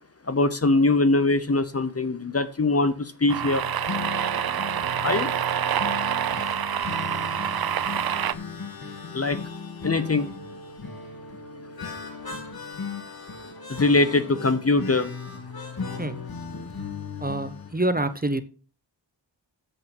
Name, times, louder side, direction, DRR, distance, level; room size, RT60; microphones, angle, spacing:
voice 1, 0.3-3.6 5.0-5.3 9.1-9.4 9.8-10.3 13.7-15.1, left 2 dB, 35° left, 12 dB, 0.8 m, -22 dB
sound 1, 3.3-17.7, left 5 dB, 50° left, 2.0 m, -37 dB
sound 2, 3.3-8.3, right 9 dB, 55° right, 0.5 m, -27 dB
voice 2, 17.2-18.4, right 1 dB, 20° right, 10 dB, 0.8 m, -26 dB
8.0 x 7.5 x 5.9 m, 0.39 s
wide cardioid pair, 100°, 45 cm